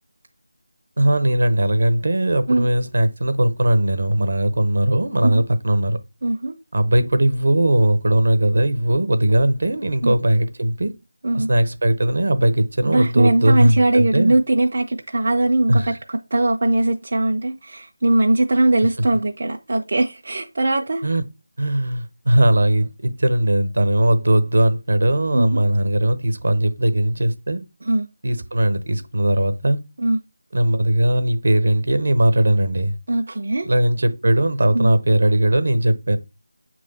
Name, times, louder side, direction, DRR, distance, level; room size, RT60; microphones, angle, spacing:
voice 1, 1.0-6.0 6.7-10.9 11.3-14.3 15.7-16.0 21.0-21.2 21.6-27.6 28.2-29.8 30.5-33.0 33.6-36.2, right 1 dB, 65° right, 0.9 m, -19 dB
voice 2, 6.2-6.5 10.0-10.1 11.2-11.5 12.8-15.8 16.1-21.0 25.3-25.6 27.8-28.1 30.0-30.2 33.1-33.7 34.7-34.9, right 2 dB, 40° right, 0.5 m, -20 dB
7.7 x 3.1 x 4.1 m
figure-of-eight pair, 175°, 0 cm